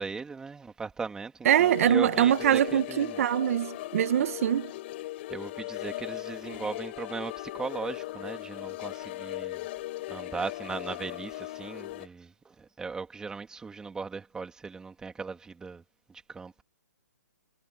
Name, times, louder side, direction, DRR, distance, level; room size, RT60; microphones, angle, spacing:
voice 1, 0.0-3.2 5.3-9.7 10.1-15.8 16.3-16.6, right 4 dB, 5° right, 2.8 m, -38 dB
voice 2, 1.4-4.7, right 10 dB, 50° right, 1.6 m, -23 dB
sound 1, 1.5-12.1, left 17 dB, 40° left, 3.8 m, -38 dB
hypercardioid pair, 155°, 10 cm